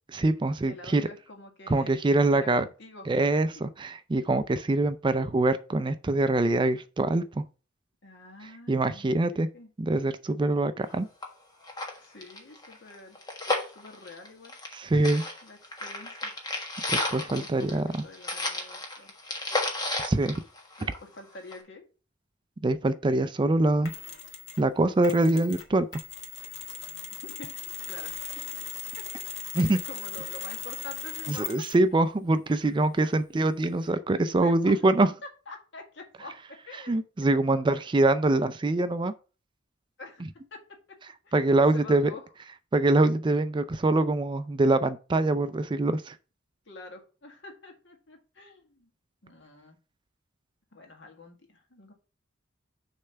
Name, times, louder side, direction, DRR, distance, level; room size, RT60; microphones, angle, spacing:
voice 1, 0.1-1.1 1.7-2.6 3.1-7.4 8.7-9.5 9.8-11.1 14.7-15.2 16.9-18.0 20.0-20.4 22.6-23.9 24.6-25.9 29.5-29.8 31.3-35.1 36.9-39.1 41.3-42.1 42.7-46.1, right 2 dB, 25° right, 0.4 m, -24 dB
voice 2, 0.6-3.1 8.0-9.7 12.0-13.2 13.8-14.5 15.4-16.3 17.3-19.1 20.8-21.8 27.1-28.2 29.0-29.1 29.3-31.5 32.6-32.7 33.0-33.1 34.4-34.8 35.5-37.0 37.4-37.7 40.0-41.0 41.2-41.3 41.7-42.2 46.7-48.9 49.2-49.8 50.7-51.9, left 3 dB, 65° left, 1.8 m, -47 dB
sound 1, 10.9-11.0 11.2-11.3 11.6-14.8 15.0-21.1 21.5-21.6, left 2 dB, 20° left, 1.4 m, -32 dB
Mechanisms, 23.8-24.7 25.0-31.9, left 8 dB, 90° left, 1.5 m, -38 dB
6.6 x 3.3 x 5.6 m
head